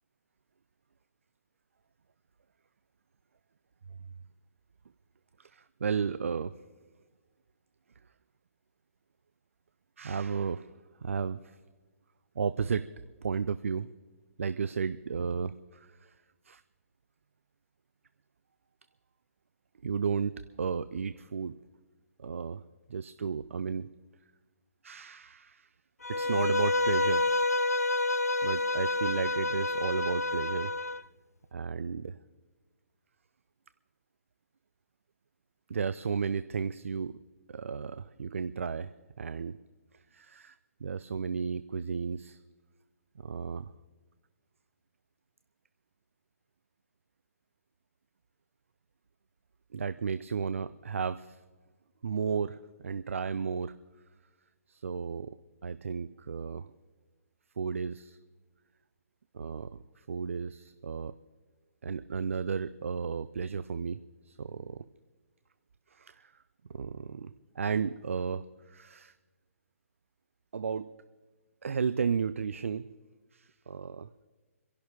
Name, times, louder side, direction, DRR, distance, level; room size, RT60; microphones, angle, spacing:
voice 1, 5.4-6.6 10.0-10.7 11.0-11.6 12.4-12.9 13.2-13.9 14.4-16.2 16.4-16.6 19.8-21.6 22.2-22.6 22.9-23.9 24.8-25.7 26.1-27.3 28.4-30.7 31.5-32.2 35.7-37.2 37.5-39.6 39.9-40.6 40.8-42.4 43.2-43.7 49.7-51.4 52.0-53.7 54.7-55.4 55.6-56.7 57.6-58.2 59.3-61.1 61.8-64.0 64.2-64.8 65.9-66.4 66.7-69.1 70.5-70.9 71.6-72.9 73.3-74.1, right 6 dB, 60° right, 14 dB, 0.4 m, -33 dB
Bowed string instrument, 26.0-31.0, left 2 dB, 80° left, 0.4 m, -28 dB
27.5 x 11.5 x 3.5 m, 1.3 s
figure-of-eight pair, 130°, 8 cm